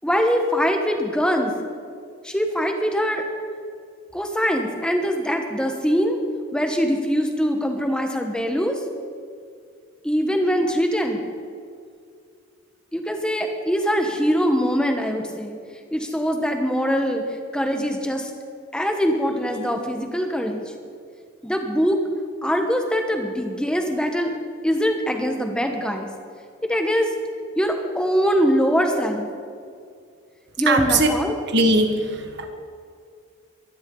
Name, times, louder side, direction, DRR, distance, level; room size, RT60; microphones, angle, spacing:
voice 1, 0.0-1.5 2.2-3.2 4.1-6.2 6.5-8.8 10.0-11.2 12.9-15.6 15.9-17.2 17.5-18.3 18.7-20.6 21.4-22.0 22.4-24.3 24.6-26.1 26.7-27.1 27.6-29.3 30.6-31.3, equal, 5° left, 3 dB, 1.2 m, -22 dB
voice 2, 30.7-31.1 31.5-32.5, right 2 dB, 55° right, 5 dB, 1.6 m, -20 dB
23.5 x 11.5 x 4.0 m, 2.3 s
head